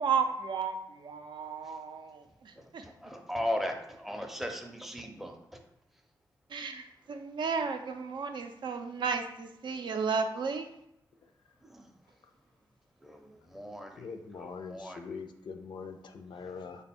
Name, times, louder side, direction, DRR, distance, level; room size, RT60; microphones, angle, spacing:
voice 1, 0.0-2.8 6.5-10.7, right 5 dB, 75° right, 6 dB, 0.4 m, -33 dB
voice 2, 1.4-1.8 2.5-5.6 5.9-6.0 11.6-12.5 13.0-14.1 14.4-15.0 16.4-16.5, equal, 5° right, 3 dB, 0.5 m, -39 dB
voice 3, 14.0-16.8, left 5 dB, 70° left, 6 dB, 0.4 m, -43 dB
3.3 x 2.2 x 4.2 m, 0.81 s
wide cardioid pair, 90°, 8 cm